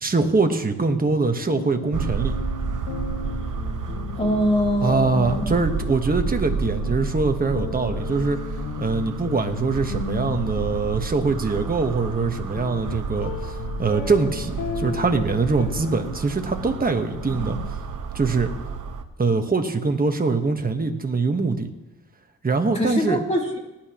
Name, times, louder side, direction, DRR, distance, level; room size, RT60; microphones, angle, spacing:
voice 1, 0.0-2.4 4.8-8.4 8.8-17.6 18.1-18.5 19.2-21.7 22.4-23.2, right 4 dB, 25° right, 5 dB, 1.4 m, -23 dB
sound 1, 1.0-17.7, left 7 dB, 90° left, 1.0 m, -35 dB
sound 2, 1.9-19.0, right 5 dB, 65° right, 1.0 m, -31 dB
voice 2, 4.2-5.5 22.7-23.6, equal, 20° left, -1 dB, 3.3 m, -23 dB
19.0 x 10.5 x 3.1 m, 1.0 s
cardioid pair, 80°, 33 cm